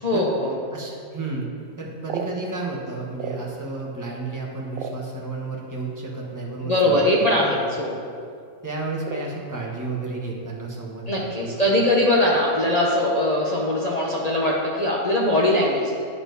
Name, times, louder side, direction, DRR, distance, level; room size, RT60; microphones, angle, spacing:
voice 1, 0.0-0.5 6.6-8.0 11.1-16.0, left 1 dB, 35° left, -5 dB, 0.8 m, -21 dB
voice 2, 0.7-1.5 1.8-7.1 7.5-7.6 8.6-11.6, right 3 dB, 15° right, -3 dB, 1.1 m, -32 dB
sound 1, 1.7-3.8 4.2-5.6 6.4-6.5 6.8-7.1 7.4-7.8 8.1-8.4 9.0-10.0 10.3-11.2 11.4-11.5 11.9-12.2 12.7-13.1, right 5 dB, 75° right, 1.0 m, -36 dB
10.5 x 4.4 x 4.0 m, 2.3 s
omnidirectional pair, 1.5 m